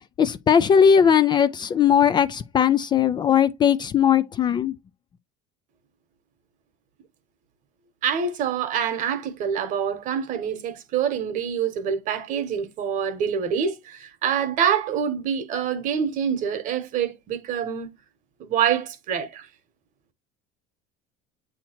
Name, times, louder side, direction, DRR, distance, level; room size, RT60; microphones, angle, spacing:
voice 1, 0.2-4.7, left 8 dB, 25° left, 0.3 m, -19 dB
voice 2, 8.0-17.9 18.4-19.5, right 8 dB, 50° right, 1.1 m, -26 dB
8.4 x 2.9 x 4.3 m
cardioid pair, 135°, 17 cm